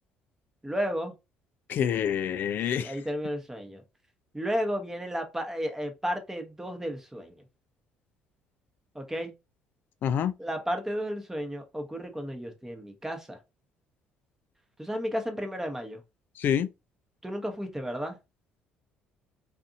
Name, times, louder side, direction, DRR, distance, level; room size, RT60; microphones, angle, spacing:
voice 1, 0.6-1.1 2.7-3.8 4.3-7.4 8.9-9.3 10.4-13.4 14.8-16.0 17.2-18.2, equal, 10° right, 0.8 m, -33 dB
voice 2, 1.7-2.9 10.0-10.3 16.4-16.7, left 9 dB, 60° left, 0.4 m, -27 dB
2.6 x 2.6 x 2.4 m
supercardioid pair, 65°, 4 cm